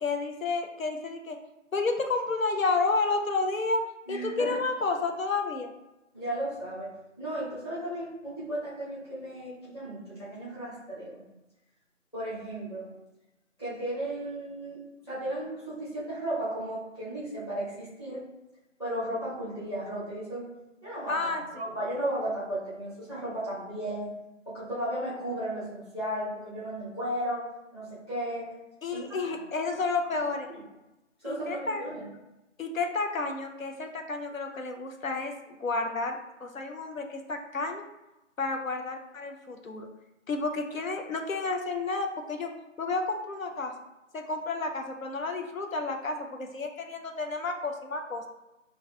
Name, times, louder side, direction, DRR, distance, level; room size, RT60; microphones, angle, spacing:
voice 1, 0.0-1.4 1.7-3.8 4.1-5.7 21.1-21.6 28.8-30.5 31.3-31.8 32.6-37.8 38.4-39.9 40.3-42.5 42.8-43.7 44.1-48.2, left 3 dB, 85° left, 4 dB, 0.7 m, -31 dB
voice 2, 4.1-4.6 6.1-11.2 12.1-12.9 13.6-14.8 15.1-18.2 18.8-20.5 20.8-24.1 24.4-27.4 27.7-28.5 28.9-29.3 30.5-30.6 31.2-32.1, right 1 dB, 20° left, -10 dB, 1.0 m, -35 dB
4.9 x 2.3 x 2.2 m, 0.98 s
figure-of-eight pair, 165°, 40 cm